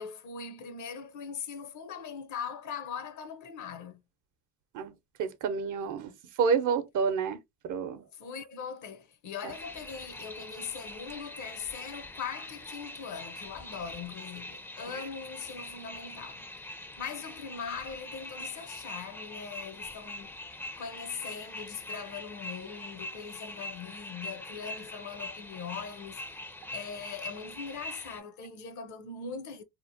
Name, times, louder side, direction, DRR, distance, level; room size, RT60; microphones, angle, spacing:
voice 1, 0.0-4.0 8.1-16.5 17.0-20.3 20.8-26.2 26.7-29.6, left 6 dB, 55° left, 0.7 m, -41 dB
voice 2, 5.2-6.1 6.4-7.4 7.6-8.0, right 6 dB, 60° right, 0.7 m, -28 dB
sound 1, 9.5-28.2, left 1 dB, 5° left, 0.4 m, -43 dB
2.9 x 2.0 x 2.6 m
supercardioid pair, 85°, 35 cm